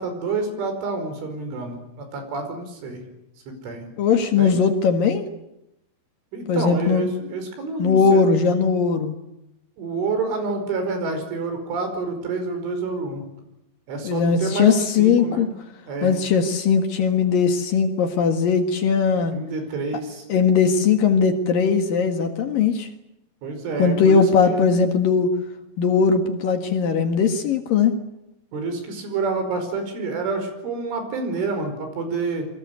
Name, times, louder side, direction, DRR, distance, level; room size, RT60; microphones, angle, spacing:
voice 1, 0.0-3.0 3.5-3.9 4.4-4.6 6.3-8.3 9.8-13.2 13.9-15.5 15.9-16.2 19.3-20.3 23.4-24.7 28.5-32.5, right 3 dB, 90° right, 7 dB, 7.5 m, -28 dB
voice 2, 4.0-5.3 6.5-7.1 7.8-9.1 14.0-15.5 16.0-19.4 20.3-22.9 23.8-25.4 25.8-28.0, left 5 dB, 60° left, 6 dB, 2.9 m, -19 dB
28.0 x 23.5 x 8.3 m, 0.87 s
omnidirectional pair, 5.4 m